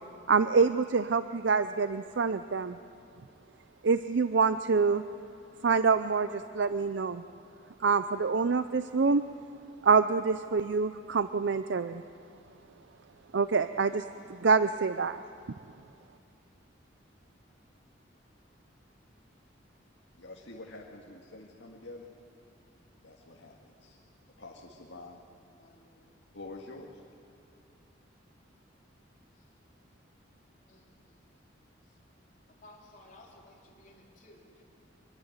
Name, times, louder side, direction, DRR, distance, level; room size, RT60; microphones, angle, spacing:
voice 1, 0.3-2.8 3.8-5.0 5.6-7.2 7.8-9.3 9.8-12.0 13.3-14.0 14.3-15.2, right 5 dB, 65° right, 11 dB, 0.5 m, -26 dB
voice 2, 20.1-22.1 23.0-24.0 24.4-25.2 26.3-27.0, left 2 dB, 70° left, -1 dB, 1.9 m, -47 dB
voice 3, 25.5-26.2 29.3-29.5 30.7-31.2 31.8-32.0 32.6-34.6, left 2 dB, 45° left, -2 dB, 4.0 m, -57 dB
25.0 x 22.5 x 8.0 m, 2.5 s
head